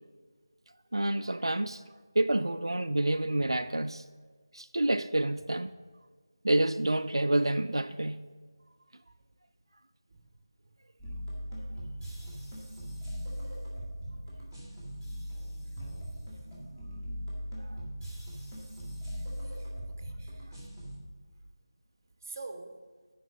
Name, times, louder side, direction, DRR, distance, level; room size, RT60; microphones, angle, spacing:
voice 1, 0.9-1.8 2.2-4.0 4.5-5.7 6.4-8.3 17.6-17.8, right 1 dB, 90° right, 10 dB, 0.3 m, -28 dB
sound 1, 11.0-21.0, equal, 10° left, 1.8 m, -40 dB
voice 2, 12.2-12.6 13.4-13.6 14.2-14.4 15.7-15.8 19.1-20.6 21.3-21.4 22.2-22.8, right 3 dB, 35° right, 6 dB, 0.8 m, -49 dB
8.9 x 5.1 x 6.2 m, 1.5 s
figure-of-eight pair, 165°, 2 cm